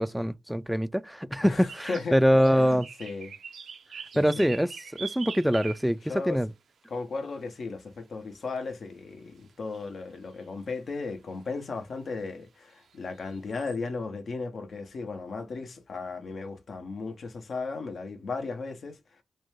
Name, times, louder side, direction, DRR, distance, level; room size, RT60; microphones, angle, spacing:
voice 1, 0.0-2.9 4.2-4.7 5.0-6.0 6.3-6.5, equal, ahead, 0.3 m, -24 dB
voice 2, 1.4-2.2 2.5-3.3 4.1-4.5 6.0-6.4 6.9-19.0, left 4 dB, 65° left, 0.6 m, -36 dB
sound 1, 1.7-2.1 2.4-6.0 7.2-7.3 8.6-8.7 9.5-9.6 9.8-9.9 10.4-10.5 12.1-12.2 12.8-13.8, right 6 dB, 75° right, 0.5 m, -43 dB
2.5 x 2.2 x 3.1 m
supercardioid pair, 45°, 0 cm